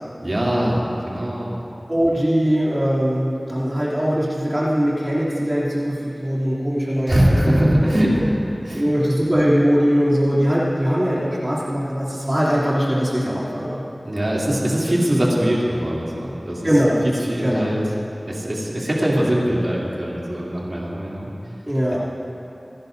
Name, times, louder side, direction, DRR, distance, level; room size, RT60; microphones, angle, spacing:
voice 1, 0.2-1.6 7.1-8.3 8.6-8.9 14.1-16.7 17.2-17.8 18.3-21.3, equal, 50° right, -6 dB, 2.9 m, -21 dB
voice 2, 1.9-8.0 8.7-13.8 16.6-17.0 17.4-17.7 21.7-22.0, equal, 25° right, -8 dB, 2.9 m, -21 dB
28.0 x 10.5 x 2.7 m, 2.9 s
wide cardioid pair, 45°, 0 cm